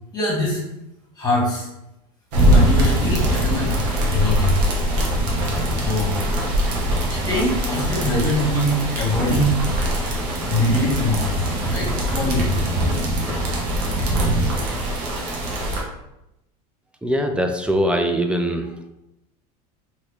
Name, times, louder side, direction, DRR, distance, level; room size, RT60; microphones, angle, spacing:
voice 1, 0.1-0.6 1.1-1.7 2.5-4.5 5.8-6.2 6.9-9.6 10.5-12.7 13.2-13.3, left 1 dB, 20° left, -5 dB, 1.5 m, -23 dB
sound 1, 2.3-15.8, right 1 dB, 75° right, 0.9 m, -22 dB
voice 2, 17.0-18.7, equal, 5° right, 5 dB, 0.3 m, -21 dB
3.0 x 2.9 x 3.1 m, 0.90 s
hypercardioid pair, 95°, 20 cm